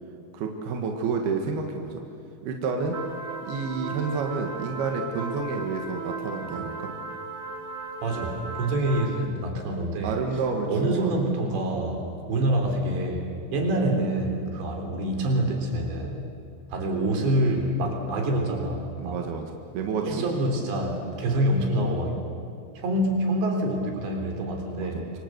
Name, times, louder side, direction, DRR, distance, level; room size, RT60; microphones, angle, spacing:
voice 1, 0.3-2.0 2.4-3.0 3.5-6.9 10.0-11.3 11.5-11.6 19.0-19.4 19.7-20.6 24.8-25.1, right 4 dB, 70° right, 2 dB, 3.5 m, -30 dB
sound 1, 2.9-9.2, right 3 dB, 30° right, 3.2 m, -36 dB
voice 2, 8.0-10.2 10.7-16.3 16.7-19.2 20.1-22.2 22.8-25.0, right 1 dB, 85° right, 2 dB, 5.8 m, -26 dB
28.0 x 24.5 x 8.0 m, 2.4 s
omnidirectional pair, 4.9 m